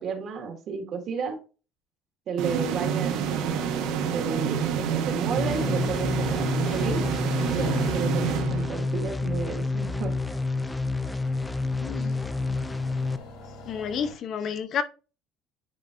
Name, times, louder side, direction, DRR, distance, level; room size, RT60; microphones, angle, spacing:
voice 1, 0.0-1.4 2.3-3.7 4.0-7.0 7.5-10.1, right 5 dB, 45° right, 1.7 m, -32 dB
sound 1, 2.4-9.1, right 7 dB, 75° right, 1.1 m, -28 dB
sound 2, 5.0-14.1, left 4 dB, 85° left, 2.5 m, -47 dB
sound 3, 5.4-13.2, left 3 dB, 10° left, 0.4 m, -29 dB
voice 2, 11.8-12.2 13.7-14.8, left 7 dB, 45° left, 0.7 m, -30 dB
10.0 x 4.0 x 2.5 m
cardioid pair, 135°, 0 cm